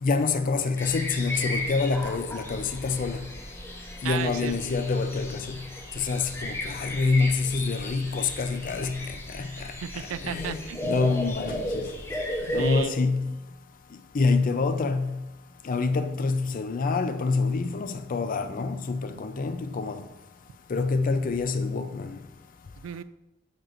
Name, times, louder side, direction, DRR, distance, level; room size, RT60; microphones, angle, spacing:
voice 1, 0.0-3.2 4.0-5.6 6.0-9.5 10.2-11.8 12.5-13.4 14.1-15.2 15.6-20.0 20.7-22.2, left 4 dB, 40° left, 0.4 m, -26 dB
sound 1, 0.8-12.8, left 1 dB, 10° left, 0.8 m, -35 dB
voice 2, 4.0-4.6 9.8-11.2 12.6-12.9 22.8-23.0, right 9 dB, 80° right, 0.3 m, -34 dB
7.8 x 5.8 x 2.5 m
head